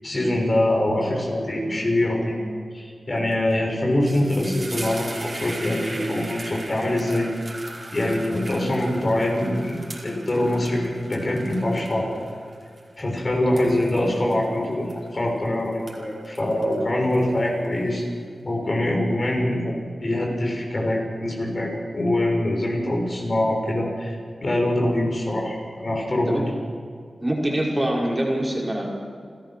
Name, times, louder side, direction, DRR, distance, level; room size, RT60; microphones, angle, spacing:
voice 1, 0.0-2.4 2.7-7.3 7.9-9.8 10.0-12.2 13.0-18.0 18.4-19.7 20.0-24.1 24.4-26.4, left 1 dB, 45° left, 0 dB, 6.5 m, -24 dB
sound 1, 3.3-3.5 3.8-15.4 15.7-17.7, right 2 dB, 40° right, 5.4 m, -39 dB
voice 2, 27.2-29.0, right 1 dB, 25° right, -2 dB, 5.5 m, -25 dB
29.0 x 14.5 x 6.2 m, 2.2 s
cardioid pair, 50°, 0 cm